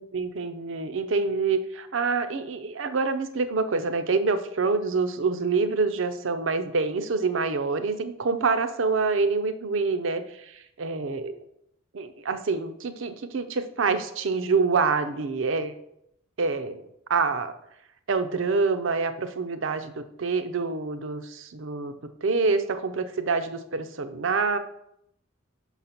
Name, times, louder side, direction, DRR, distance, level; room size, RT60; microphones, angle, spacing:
voice 1, 0.0-11.3 11.9-15.7 16.4-16.8 17.1-17.5 18.1-21.9 22.2-24.6, right 4 dB, 65° right, 10 dB, 0.6 m, -26 dB
5.9 x 4.1 x 5.8 m, 0.77 s
head